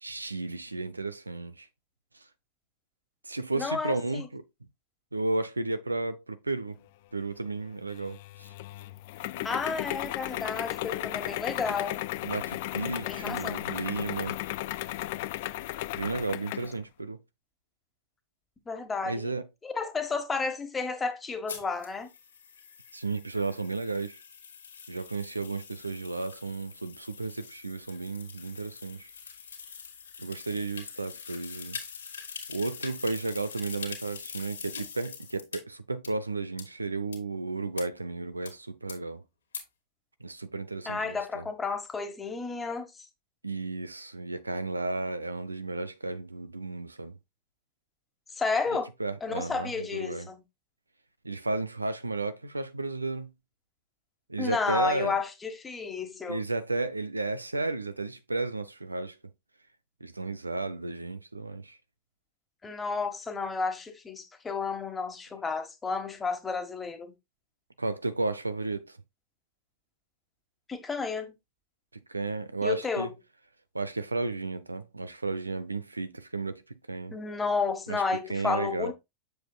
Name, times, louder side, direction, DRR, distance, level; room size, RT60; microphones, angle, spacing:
voice 1, 0.0-1.7 3.2-4.4 5.1-6.8 7.1-8.5 12.2-14.4 15.9-17.2 19.0-19.4 22.9-24.2 24.9-29.1 30.2-31.8 32.5-39.2 40.2-41.5 43.4-47.2 49.0-50.3 51.2-53.3 54.3-55.2 56.3-59.2 60.0-61.8 67.8-68.9 72.1-73.1 73.7-76.6 76.9-77.1 77.9-78.0 78.3-78.9, right 3 dB, 80° right, 0.6 m, -33 dB
voice 2, 3.5-4.3 9.4-12.0 13.0-13.6 18.7-19.4 19.6-22.1 40.8-43.0 48.3-48.9 49.2-50.4 54.4-56.4 62.6-67.1 70.7-71.3 72.6-73.1 77.1-78.9, left 4 dB, 15° left, 1.4 m, -32 dB
sound 1, 7.9-16.7, left 16 dB, 50° left, 0.4 m, -35 dB
sound 2, 21.5-35.6 36.0-36.1 36.6-36.7 37.1-37.2 37.8-37.9 38.5-38.6 38.9-39.0 39.5-39.6, left 6 dB, 70° left, 2.2 m, -44 dB
7.8 x 7.1 x 2.3 m
figure-of-eight pair, 90°, 0 cm